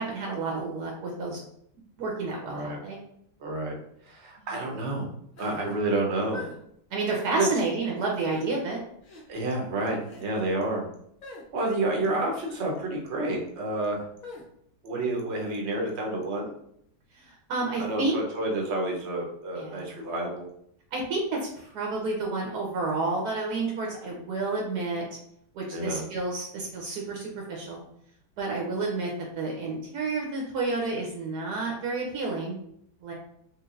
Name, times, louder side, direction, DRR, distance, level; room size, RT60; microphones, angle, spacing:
voice 1, 0.0-1.4 1.8-3.0 4.4-4.5 6.9-8.8 17.1-18.1 19.5-19.9 20.9-25.0 25.5-27.8 28.4-32.6 33.0-33.1, right 3 dB, 75° right, -2 dB, 1.2 m, -30 dB
voice 2, 2.4-2.8 3.4-3.8 4.0-5.1 5.4-6.4 7.3-7.5 9.3-10.8 11.5-14.0 14.8-16.5 17.8-20.4 25.7-26.0, right 2 dB, 55° right, -1 dB, 0.8 m, -29 dB
sound 1, 5.4-5.6 6.3-6.6 7.1-7.3 8.2-8.4 9.0-9.2 10.0-10.3 11.2-11.4 12.4-12.7 14.2-14.4, left 3 dB, 60° left, 0.4 m, -43 dB
3.2 x 3.0 x 2.4 m, 0.71 s
omnidirectional pair, 1.8 m